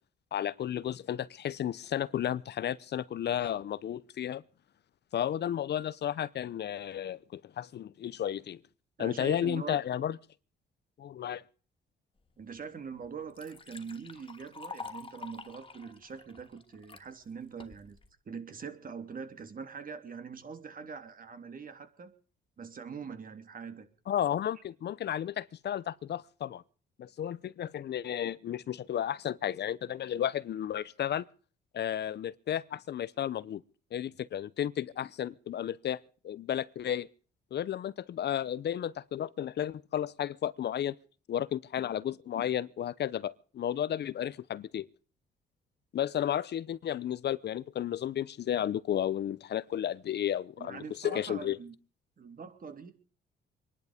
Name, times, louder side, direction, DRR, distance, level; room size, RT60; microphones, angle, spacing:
voice 1, 0.3-4.4 5.1-8.6 9.0-10.2 11.0-11.4 24.1-26.6 27.0-31.3 31.7-33.6 33.9-37.1 37.5-41.0 41.3-44.9 45.9-51.6, left 10 dB, 60° left, 0.8 m, -33 dB
voice 2, 9.0-9.8 12.4-18.0 18.2-22.1 22.6-23.9 50.6-51.7 52.2-52.9, right 5 dB, 45° right, 3.2 m, -43 dB
Liquid, 12.6-12.7 13.0-17.1 17.6-18.1, left 4 dB, 25° left, 2.5 m, -47 dB
25.0 x 11.0 x 5.1 m
cardioid pair, 90°, 20 cm